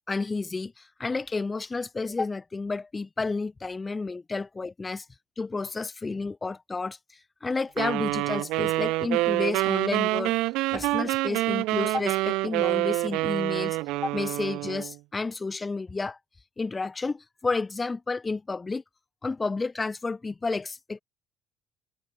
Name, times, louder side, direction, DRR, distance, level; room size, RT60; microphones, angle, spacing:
voice 1, 0.1-5.1 5.4-7.0 7.4-10.3 10.7-16.2 16.6-18.8 19.2-21.0, left 3 dB, 20° left, 3.8 m, -31 dB
sound 1, 7.8-14.9, right 20 dB, 85° right, 7.6 m, -27 dB
cardioid pair, 105°, 0 cm